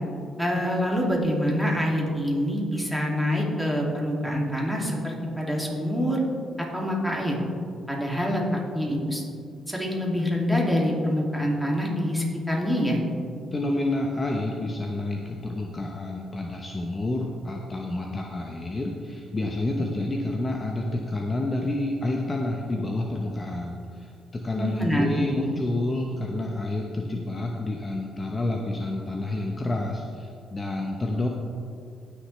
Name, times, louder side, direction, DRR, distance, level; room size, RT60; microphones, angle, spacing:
voice 1, 0.4-6.2 6.6-7.4 7.9-8.4 8.7-9.2 9.7-13.0 24.6-25.4, equal, ahead, -2 dB, 2.4 m, -26 dB
voice 2, 13.5-31.3, left 2 dB, 30° left, 1 dB, 0.9 m, -29 dB
18.5 x 6.7 x 3.3 m, 2.4 s
cardioid pair, 90°, 0 cm